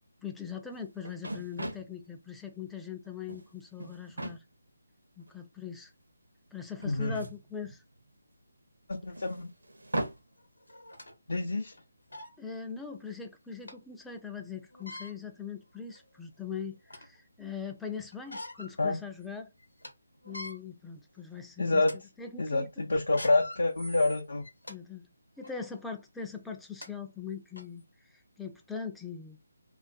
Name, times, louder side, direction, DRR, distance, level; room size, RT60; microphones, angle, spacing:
voice 1, 0.2-4.4 5.2-5.9 6.5-7.8 12.4-19.5 20.2-21.8 22.2-22.7 24.7-25.1 25.4-29.4, left 6 dB, 5° left, 0.3 m, -41 dB
sound 1, 0.7-0.8 1.0-1.9 3.0-3.5 3.8-4.4 5.3-5.4 6.8-8.1 9.1-10.2, right 1 dB, 80° right, 0.6 m, -38 dB
voice 2, 6.8-7.2 9.0-9.5 11.3-11.7 18.8-19.0 21.6-21.9 22.4-24.4, left 2 dB, 65° left, 0.5 m, -27 dB
sound 2, 10.7-11.1 11.7-11.8 12.1-12.3 13.7-13.8 14.7-15.1 15.9-16.0 16.5-17.2 18.1-18.7 19.2-19.3 19.6-19.9 20.2-20.5 21.2-21.4 21.8-22.0 23.0-24.8 25.4-25.6 26.4-26.5 26.8-26.9 27.6-27.7, left 1 dB, 85° left, 0.8 m, -44 dB
2.4 x 2.2 x 2.6 m
figure-of-eight pair, 155°, 0 cm